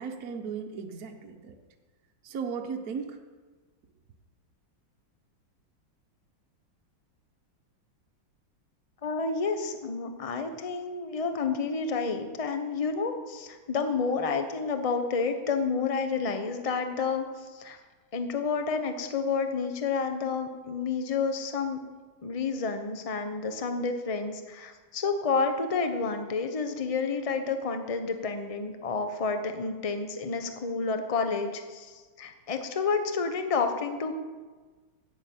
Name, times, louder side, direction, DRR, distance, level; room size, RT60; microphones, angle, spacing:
voice 1, 0.0-1.5 2.2-3.2, right 6 dB, 55° right, 3 dB, 1.3 m, -36 dB
voice 2, 9.0-17.8 18.1-21.8 22.2-34.1, left 4 dB, 45° left, 6 dB, 0.4 m, -30 dB
10.5 x 8.4 x 8.5 m, 1.4 s
omnidirectional pair, 2.2 m